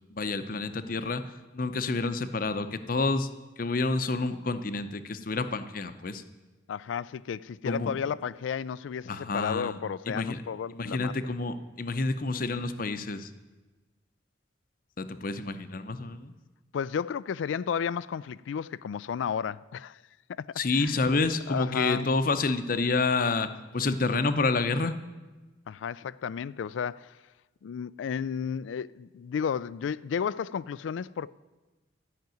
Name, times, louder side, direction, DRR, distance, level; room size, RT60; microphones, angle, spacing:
voice 1, 0.1-1.2 1.5-3.3 3.6-6.2 7.6-7.9 9.1-9.8 10.1-10.4 10.7-13.3 15.0-16.3 20.6-24.9, left 3 dB, 50° left, 0.7 m, -29 dB
voice 2, 6.7-11.1 12.2-12.4 16.7-20.0 20.3-21.0 21.5-22.1 25.7-27.2 27.6-31.3, left 7 dB, 80° left, 0.3 m, -33 dB
13.0 x 5.9 x 9.1 m
head